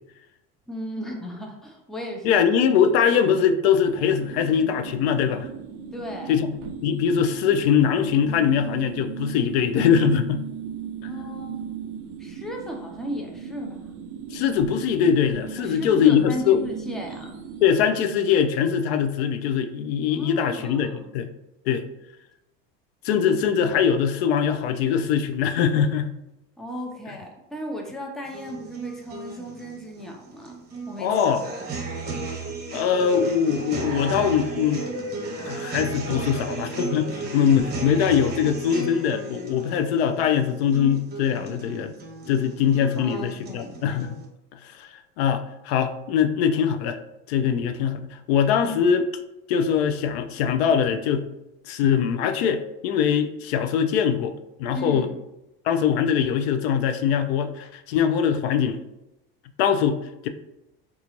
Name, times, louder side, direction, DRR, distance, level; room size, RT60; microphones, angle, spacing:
voice 1, 0.7-2.4 5.9-6.3 11.1-11.7 12.2-13.8 15.6-17.4 20.1-21.1 26.6-30.6 30.9-31.3 43.0-43.7 48.6-49.0 54.7-55.1, equal, ahead, 0 dB, 0.4 m, -35 dB
voice 2, 2.2-5.5 6.3-6.5 6.8-10.4 11.0-11.1 14.3-16.6 17.6-21.3 21.7-21.8 23.0-26.1 31.0-31.4 32.7-34.9 35.4-42.0 42.3-44.1 44.5-47.0 47.3-49.1 49.5-51.3 51.6-55.1 55.6-58.8 59.6-60.3, left 8 dB, 90° left, 8 dB, 0.5 m, -22 dB
sound 1, 3.8-17.7, right 7 dB, 70° right, 0.5 m, -37 dB
sound 2, 28.2-44.2, right 3 dB, 30° right, 0.9 m, -34 dB
3.8 x 2.4 x 2.9 m, 0.91 s
supercardioid pair, 125°, 30 cm